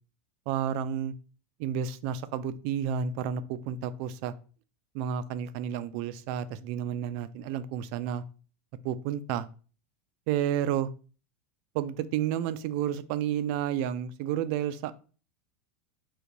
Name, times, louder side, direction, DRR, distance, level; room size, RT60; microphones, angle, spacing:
voice 1, 0.5-1.1 1.6-4.3 4.9-8.2 8.8-9.5 10.3-10.9 11.7-14.9, right 9 dB, 60° right, 13 dB, 0.4 m, -31 dB
3.7 x 2.5 x 2.9 m, 0.37 s
hypercardioid pair, 100°, 7 cm